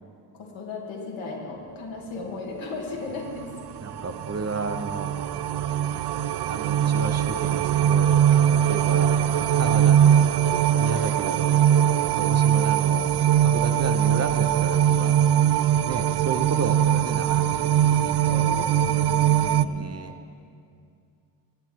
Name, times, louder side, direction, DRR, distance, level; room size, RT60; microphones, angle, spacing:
voice 1, 0.3-3.4 14.9-15.1 18.3-19.8, left 3 dB, 85° left, -2 dB, 2.5 m, -36 dB
sound 1, 3.4-19.7, right 10 dB, 60° right, 0.5 m, -21 dB
voice 2, 3.8-5.1 6.5-8.2 8.5-9.1 9.6-10.3 10.8-11.6 12.1-13.1 13.4-15.1 15.9-18.3 19.6-20.1, right 4 dB, 35° right, 7 dB, 1.0 m, -32 dB
17.5 x 8.7 x 4.7 m, 2.4 s
cardioid pair, 70°, 45 cm